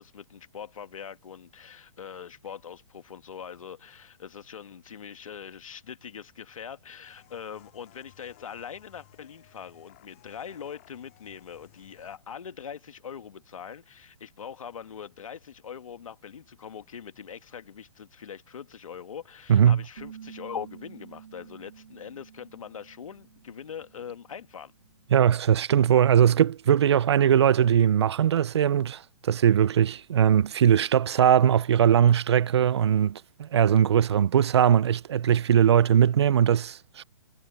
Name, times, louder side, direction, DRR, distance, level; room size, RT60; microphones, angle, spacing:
voice 1, 0.0-24.7, left 7 dB, 85° left, 1.7 m, -42 dB
sound 1, 7.0-12.2, left 20 dB, 25° left, 6.7 m, -58 dB
voice 2, 19.5-19.8 25.1-37.0, right 9 dB, 55° right, 0.5 m, -20 dB
sound 2, 20.0-25.4, right 8 dB, 80° right, 1.6 m, -50 dB
hypercardioid pair, 180°, 17 cm